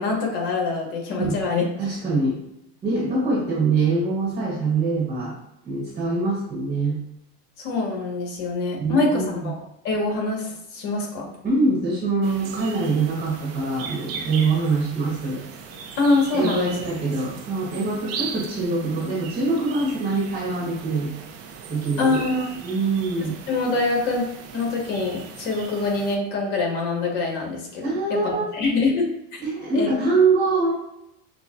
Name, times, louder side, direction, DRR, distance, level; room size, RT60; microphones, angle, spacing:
voice 1, 0.0-1.6 7.6-11.3 16.0-16.7 22.0-22.5 23.5-24.3 24.5-27.8 28.1-29.4 29.7-29.9, left 3 dB, 60° left, -1 dB, 1.4 m, -24 dB
voice 2, 1.8-2.4 2.8-5.3 5.6-7.0 8.8-9.5 11.4-15.4 16.3-21.1 21.7-22.2 22.6-23.3 27.8-28.5 29.4-30.7, right 3 dB, 20° right, -4 dB, 1.0 m, -24 dB
sound 1, 12.2-26.2, right 6 dB, 45° right, 0.5 m, -38 dB
5.7 x 2.2 x 2.4 m, 0.80 s
supercardioid pair, 130°, 36 cm